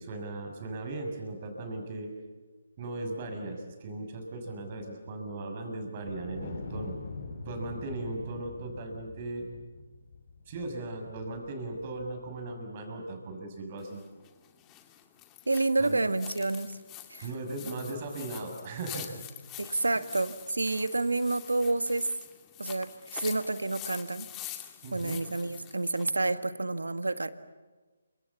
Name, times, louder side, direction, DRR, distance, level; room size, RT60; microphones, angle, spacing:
voice 1, 0.0-2.1 2.8-7.0 7.4-9.5 10.5-14.0 15.8-16.0 17.2-19.2 19.9-20.0 24.8-25.2, right 2 dB, 35° right, 4 dB, 6.5 m, -38 dB
Wind, 6.0-12.6, left 3 dB, 60° left, 6.4 m, -44 dB
sound 1, 13.8-26.1, left 13 dB, 20° left, 2.1 m, -46 dB
voice 2, 15.5-16.8 17.1-17.3 19.6-22.1 22.6-24.3 24.9-27.3, right 2 dB, 85° right, 11 dB, 1.6 m, -29 dB
28.5 x 25.5 x 7.2 m, 1.3 s
figure-of-eight pair, 150°, 0 cm